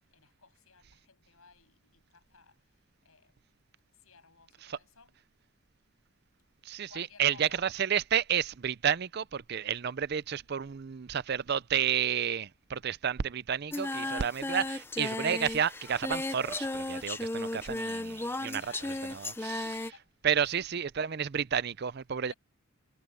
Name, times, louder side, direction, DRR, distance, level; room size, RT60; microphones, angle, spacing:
voice 1, 0.1-3.5 4.0-5.1 6.9-7.6 18.5-20.1 20.4-20.7 22.2-22.3, left 5 dB, 80° left, 8.0 m, -57 dB
voice 2, 6.6-18.6 19.4-19.6 20.2-22.3, right 8 dB, 50° right, 0.5 m, -31 dB
Singing, 13.7-19.9, left 2 dB, 10° left, 0.5 m, -35 dB
head